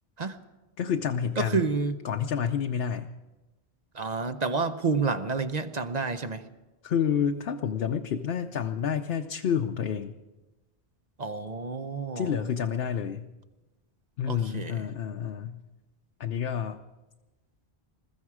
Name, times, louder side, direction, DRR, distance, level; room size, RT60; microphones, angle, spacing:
voice 1, 0.8-1.6 2.0-3.1 6.8-10.1 12.2-13.3 14.2-15.6 16.2-16.8, left 8 dB, 70° left, 5 dB, 0.9 m, -29 dB
voice 2, 1.4-2.0 3.9-6.4 11.2-12.4 14.3-14.9, right 4 dB, 45° right, 9 dB, 0.9 m, -29 dB
21.5 x 14.0 x 4.8 m, 1.1 s
omnidirectional pair, 1.1 m